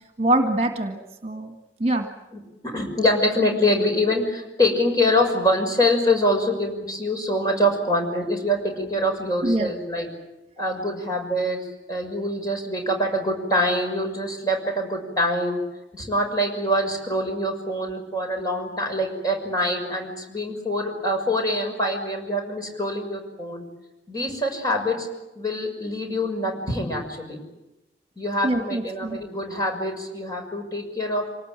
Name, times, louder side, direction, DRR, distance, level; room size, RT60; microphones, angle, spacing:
voice 1, 0.2-1.5 1.8-2.1 9.4-9.7 28.4-29.2, right 1 dB, 35° right, 5 dB, 1.9 m, -24 dB
voice 2, 2.3-10.1 10.6-15.6 15.9-23.6 24.1-25.1 25.3-27.4 28.2-31.3, left 1 dB, 20° left, 2 dB, 6.2 m, -25 dB
27.0 x 19.0 x 9.1 m, 1.0 s
head